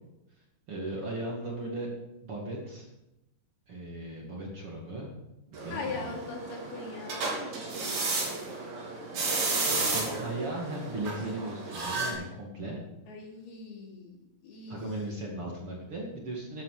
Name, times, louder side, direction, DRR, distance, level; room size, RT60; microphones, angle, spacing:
voice 1, 0.7-1.9 2.2-2.9 3.7-5.1 5.5-6.1 9.7-12.8 14.7-16.6, right 1 dB, 40° right, -2 dB, 2.5 m, -37 dB
sound 1, 5.5-12.1, right 3 dB, 60° right, 5.5 m, -33 dB
voice 2, 5.7-8.2 13.0-14.8, left 4 dB, 75° left, 0 dB, 4.5 m, -41 dB
13.5 x 12.0 x 5.0 m, 0.90 s
omnidirectional pair, 4.7 m